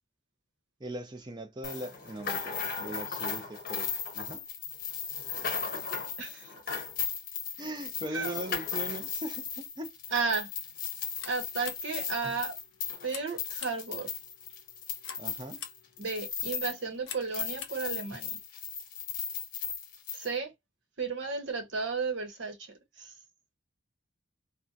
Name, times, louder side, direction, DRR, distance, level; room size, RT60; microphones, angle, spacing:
voice 1, 0.8-4.4 5.9-6.0 7.6-9.9 15.2-15.6, right 1 dB, 20° right, 0.5 m, -40 dB
sound 1, 1.6-16.8 17.1-20.3, left 6 dB, 45° left, 0.7 m, -36 dB
voice 2, 6.2-6.8 8.1-8.4 10.1-10.5 11.3-12.6 13.0-14.1 16.0-18.4 20.1-20.5 21.0-23.1, right 4 dB, 70° right, 1.0 m, -34 dB
sound 2, 11.0-18.4, left 9 dB, 80° left, 0.5 m, -48 dB
2.6 x 2.1 x 2.5 m
head